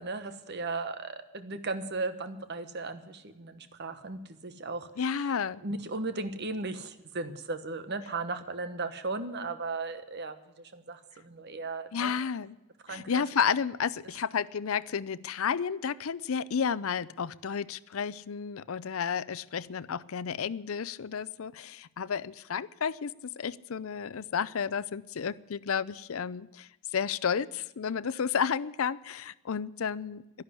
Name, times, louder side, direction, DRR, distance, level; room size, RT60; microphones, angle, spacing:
voice 1, 0.0-4.9 5.6-12.1 12.8-13.5, right 3 dB, 50° right, 10 dB, 1.1 m, -36 dB
voice 2, 5.0-5.6 11.9-12.6 12.9-26.7 26.9-30.4, left 7 dB, 75° left, 17 dB, 0.5 m, -32 dB
12.0 x 11.5 x 9.7 m, 0.97 s
head